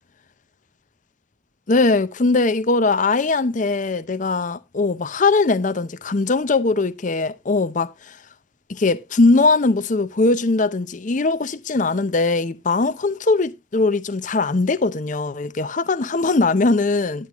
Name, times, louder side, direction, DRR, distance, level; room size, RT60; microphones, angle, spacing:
voice 1, 1.7-8.2 8.7-17.3, left 3 dB, 40° left, 0.6 m, -20 dB
10.5 x 10.0 x 3.0 m
head